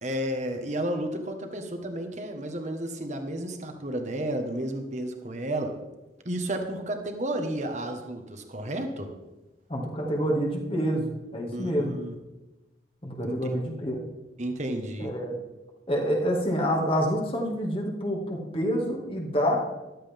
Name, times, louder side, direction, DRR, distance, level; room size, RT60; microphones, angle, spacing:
voice 1, 0.0-5.7 6.2-9.1 11.5-12.2 13.2-13.4 14.4-15.1, right 1 dB, 40° right, 5 dB, 1.5 m, -32 dB
voice 2, 9.7-11.9 13.0-14.0 15.0-15.4 15.9-19.6, equal, 30° left, 0 dB, 2.1 m, -27 dB
14.0 x 12.5 x 3.6 m, 1.1 s
head